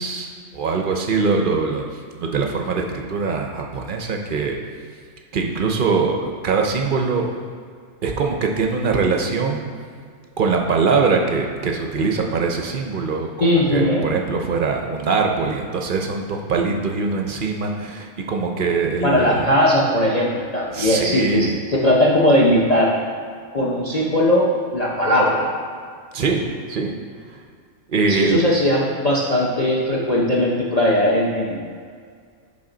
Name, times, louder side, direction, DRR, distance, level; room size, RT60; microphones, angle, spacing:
voice 1, 0.0-1.8 2.2-4.6 5.3-7.4 8.0-9.6 10.4-19.5 20.7-21.6 26.1-26.4 26.7-26.9 27.9-28.4, right 4 dB, 50° right, 2 dB, 0.6 m, -22 dB
voice 2, 13.4-14.1 19.0-23.0 23.5-25.5 28.1-31.6, left 1 dB, 40° left, -3 dB, 0.7 m, -19 dB
10.5 x 3.7 x 3.9 m, 2.1 s
omnidirectional pair, 1.4 m